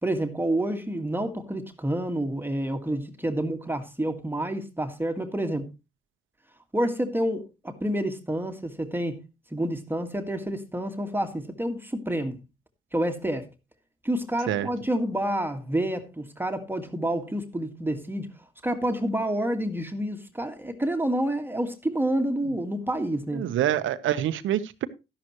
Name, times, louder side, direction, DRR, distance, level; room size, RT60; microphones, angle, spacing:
voice 1, 0.0-5.7 6.7-9.2 9.5-12.4 12.9-13.5 14.0-18.3 18.6-23.5, right 1 dB, 10° right, 1.8 m, -28 dB
voice 2, 23.3-24.9, right 11 dB, 80° right, 1.1 m, -26 dB
12.5 x 11.0 x 3.1 m
cardioid pair, 90°, 20 cm